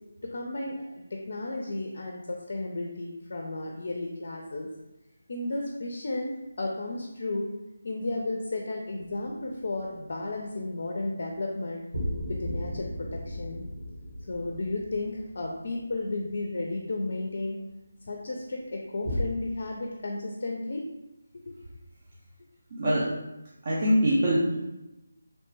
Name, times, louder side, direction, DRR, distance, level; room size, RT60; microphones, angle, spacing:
voice 1, 0.2-4.7 5.3-6.3 6.6-7.5 7.8-11.8 12.3-13.7 14.3-17.6 18.1-20.9 21.5-21.6, left 2 dB, 55° left, 1 dB, 0.4 m, -33 dB
sound 1, 9.0-9.9 11.9-16.3 19.0-19.3, left 1 dB, 70° right, 1.3 m, -35 dB
voice 2, 22.7-23.1 23.6-24.8, equal, 45° right, -6 dB, 0.5 m, -24 dB
2.9 x 2.1 x 3.2 m, 0.93 s
figure-of-eight pair, 155°, 0 cm